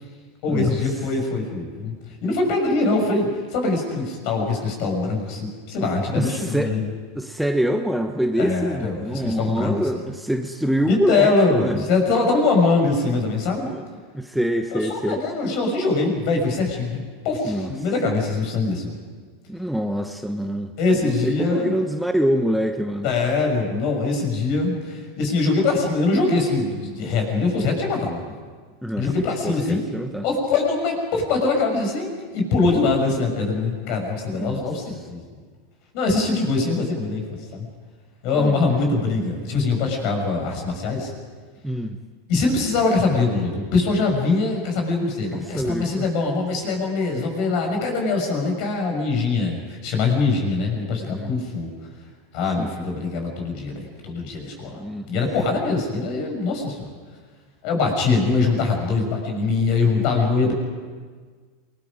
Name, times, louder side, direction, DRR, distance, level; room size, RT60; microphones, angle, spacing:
voice 1, 0.4-1.9 2.2-6.8 8.4-9.9 10.9-13.7 14.7-18.9 20.8-21.7 23.0-28.2 29.0-29.8 30.2-35.2 35.9-37.2 37.5-37.7 38.2-41.1 42.3-51.7 52.3-54.8 55.1-56.9 57.6-60.5, left 3 dB, 50° left, 3 dB, 6.6 m, -23 dB
voice 2, 6.1-6.8 7.1-11.8 13.7-13.8 14.1-15.2 17.4-17.7 19.5-20.7 21.0-23.1 28.8-29.1 29.4-30.2 34.3-34.6 38.3-38.8 41.6-42.0 45.3-46.1 51.0-51.3 52.6-52.8 54.7-55.1, equal, ahead, 6 dB, 1.2 m, -25 dB
28.5 x 20.5 x 5.2 m, 1.5 s
hypercardioid pair, 90°, 0 cm